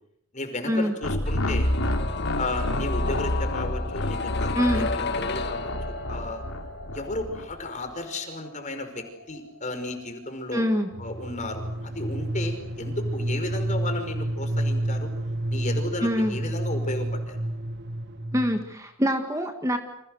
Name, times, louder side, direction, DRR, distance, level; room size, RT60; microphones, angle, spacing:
voice 1, 0.3-1.7 2.4-6.4 6.9-10.6 11.0-15.1 15.5-17.4, left 2 dB, 35° left, 6 dB, 5.3 m, -34 dB
sound 1, 1.0-7.4, left 1 dB, 80° left, 3.4 m, -29 dB
sound 2, 1.2-13.1 13.4-13.5, left 4 dB, 50° left, 2.1 m, -35 dB
voice 2, 4.6-4.9 10.5-10.9 16.0-16.3 18.3-19.8, equal, 15° right, 5 dB, 2.0 m, -24 dB
sound 3, 10.9-18.7, right 1 dB, 55° right, 1.9 m, -30 dB
30.0 x 27.0 x 6.6 m, 0.73 s
head